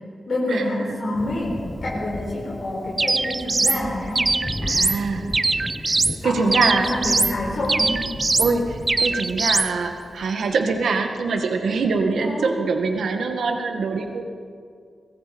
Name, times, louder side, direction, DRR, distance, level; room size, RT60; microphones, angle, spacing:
voice 1, 0.3-1.5 1.8-4.2 6.2-8.0 12.2-12.5, left 1 dB, 50° left, -4 dB, 4.5 m, -27 dB
Thunder, 1.1-10.8, left 1 dB, 15° left, 0.9 m, -36 dB
sound 1, 3.0-3.8 4.1-5.0 5.3-6.2 6.5-7.3 7.7-8.5 8.9-9.7, right 3 dB, 25° right, 0.5 m, -22 dB
voice 2, 4.6-5.3 5.7-6.0 6.2-7.0 8.4-14.2, right 4 dB, 80° right, 4 dB, 1.9 m, -24 dB
24.0 x 20.5 x 5.4 m, 2.1 s
wide cardioid pair, 170°, 0 cm